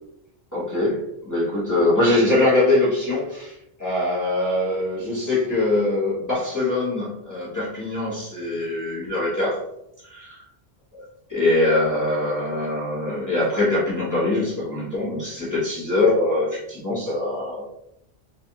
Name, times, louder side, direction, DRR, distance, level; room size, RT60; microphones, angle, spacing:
voice 1, 0.5-9.6 10.0-10.4 10.9-11.0 11.3-17.6, left 2 dB, 20° left, -9 dB, 0.8 m, -23 dB
2.6 x 2.3 x 2.7 m, 0.82 s
omnidirectional pair, 1.1 m